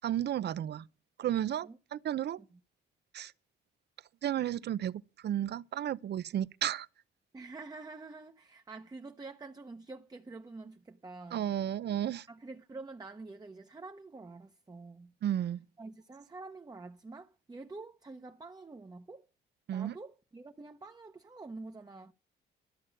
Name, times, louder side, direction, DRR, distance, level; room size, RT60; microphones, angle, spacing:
voice 1, 0.0-0.8 1.2-2.4 3.1-3.3 4.2-6.9 11.3-12.3 15.2-15.6 19.7-19.9, right 11 dB, 60° right, 0.7 m, -33 dB
voice 2, 7.3-11.4 12.3-15.1 15.8-19.3 19.7-22.1, right 3 dB, 20° right, 1.0 m, -47 dB
13.0 x 7.5 x 6.5 m
cardioid pair, 90°, 20 cm